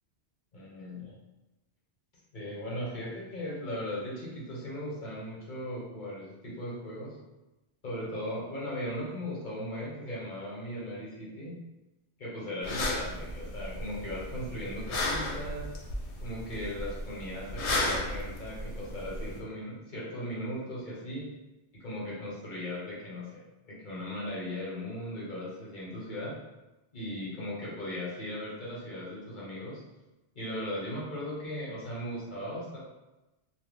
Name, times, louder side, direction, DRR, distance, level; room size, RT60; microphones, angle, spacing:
voice 1, 0.5-1.1 2.3-7.2 7.8-11.5 12.2-15.7 16.2-21.3 21.7-26.4 26.9-29.8 30.3-32.8, equal, 50° left, -6 dB, 0.9 m, -38 dB
sound 1, 12.6-19.4, left 2 dB, 80° left, 0.9 m, -34 dB
2.2 x 2.2 x 3.4 m, 1.0 s
omnidirectional pair, 1.1 m